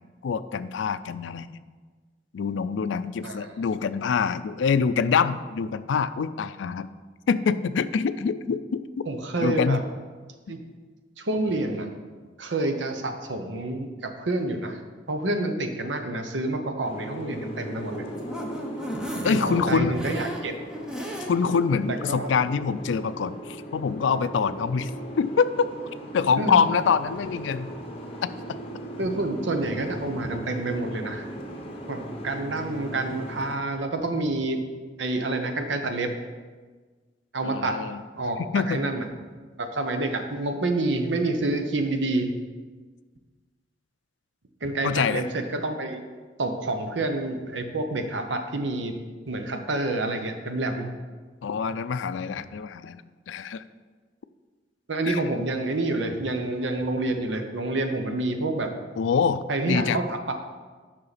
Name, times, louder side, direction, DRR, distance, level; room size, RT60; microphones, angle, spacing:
voice 1, 0.2-1.5 2.3-6.9 7.3-9.1 9.4-9.8 19.2-19.9 21.3-24.9 25.2-25.7 26.1-27.7 28.2-28.3 37.4-38.0 38.5-38.8 44.8-45.3 51.4-53.6 55.1-55.2 59.0-60.0, left 6 dB, 85° left, 14 dB, 0.4 m, -25 dB
voice 2, 9.1-9.8 10.5-10.6 11.2-11.9 12.4-14.8 15.1-18.0 19.2-20.5 21.9-22.3 26.4-26.7 29.0-31.3 31.9-34.6 35.0-36.1 37.3-37.8 38.2-38.4 38.7-39.1 39.6-42.3 44.6-46.0 46.4-48.9 49.3-50.9 54.9-58.7 59.5-60.3, right 2 dB, 80° right, 6 dB, 0.9 m, -28 dB
Boat Water vehicle, 16.8-33.6, right 1 dB, 35° left, 0.9 m, -38 dB
sound 1, 17.7-21.6 22.0-22.1 22.5-22.6, equal, 5° right, 0.9 m, -36 dB
9.6 x 5.7 x 4.1 m, 1.4 s
head